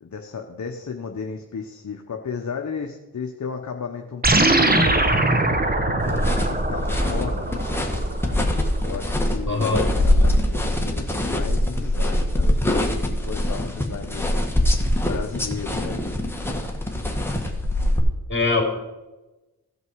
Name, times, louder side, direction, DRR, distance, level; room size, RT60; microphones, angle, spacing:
voice 1, 0.0-5.5 6.1-7.6 8.8-14.4 15.0-16.1, left 5 dB, 45° left, 4 dB, 1.0 m, -34 dB
sound 1, 4.2-8.9, right 2 dB, 20° right, 1.1 m, -22 dB
sound 2, 6.0-18.0, left 1 dB, 5° left, 1.6 m, -23 dB
voice 2, 9.4-9.8 18.3-18.6, left 3 dB, 30° left, 2 dB, 3.3 m, -21 dB
16.0 x 5.4 x 4.7 m, 1.1 s
cardioid pair, 55°, 40 cm